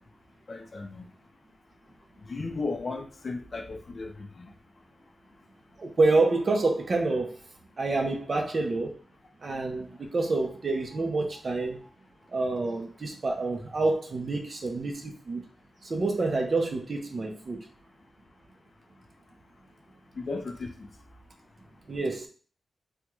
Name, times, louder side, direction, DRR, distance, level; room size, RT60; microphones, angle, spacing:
voice 1, 0.5-1.1 2.2-4.6 9.9-10.1 20.1-21.0 21.6-21.7, left 3 dB, 40° left, 4 dB, 0.4 m, -36 dB
voice 2, 5.8-7.3 7.8-8.9 9.4-11.8 12.3-15.4 15.8-17.6 21.9-22.3, right 3 dB, 40° right, 3 dB, 0.5 m, -27 dB
3.5 x 2.1 x 3.0 m, 0.40 s
wide cardioid pair, 165°, 0 cm